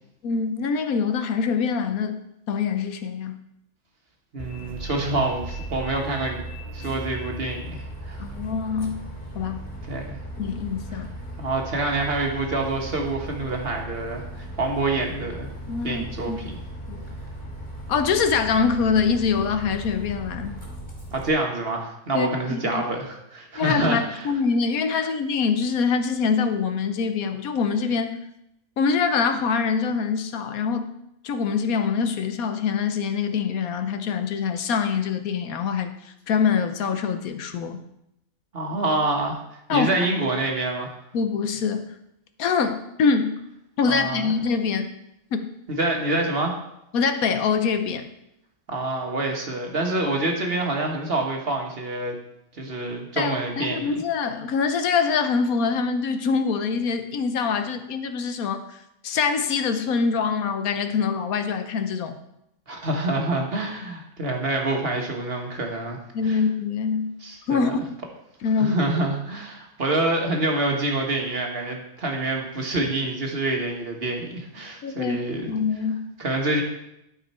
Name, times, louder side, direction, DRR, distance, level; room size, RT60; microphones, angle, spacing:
voice 1, 0.2-2.2 2.5-3.4 8.2-9.0 9.3-9.6 10.4-11.1 15.7-16.4 16.9-17.1 17.9-20.5 22.1-22.8 23.5-28.1 28.8-30.9 31.2-35.9 36.3-37.8 39.7-39.9 41.1-41.9 42.4-43.4 43.8-44.9 45.3-45.4 46.9-48.1 53.2-62.2 66.1-67.2 67.5-67.8 68.4-68.8 74.8-75.2 75.5-76.1, left 5 dB, 70° left, 8 dB, 1.2 m, -24 dB
voice 2, 4.3-6.4 6.7-8.2 9.9-10.2 10.9-11.0 11.4-15.5 15.8-16.5 21.1-24.3 24.9-25.0 38.5-40.9 43.9-44.3 45.7-46.5 48.7-52.1 52.6-54.0 62.7-66.4 67.2-67.7 68.6-75.5 76.2-76.6, right 2 dB, 40° right, 1 dB, 1.5 m, -27 dB
Bus, 4.4-21.3, right 1 dB, 5° left, 3.2 m, -37 dB
12.0 x 5.3 x 4.3 m, 0.82 s
omnidirectional pair, 1.6 m